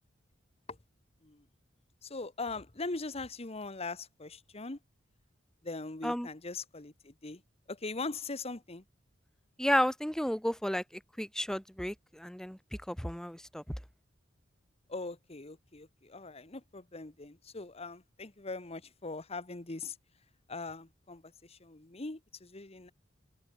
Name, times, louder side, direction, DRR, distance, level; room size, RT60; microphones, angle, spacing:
voice 1, 2.0-4.8 5.6-7.4 7.7-8.8 14.9-20.0 20.5-22.9, left 3 dB, 30° left, 1.2 m, -41 dB
voice 2, 9.6-12.6 12.9-13.6, equal, 5° left, 1.3 m, -32 dB
open air
head